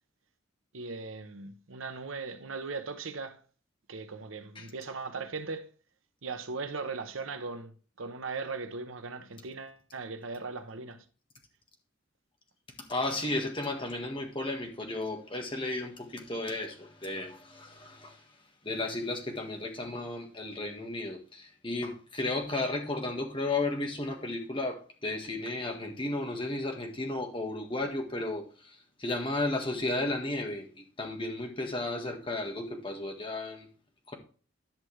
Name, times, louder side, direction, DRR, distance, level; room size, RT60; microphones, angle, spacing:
voice 1, 0.7-3.4 3.9-5.7 6.2-11.0, right 4 dB, 85° right, 1.0 m, -38 dB
voice 2, 12.9-18.2 18.6-33.7 34.1-34.2, left 2 dB, 25° left, 1.6 m, -34 dB
10.5 x 6.4 x 3.2 m
head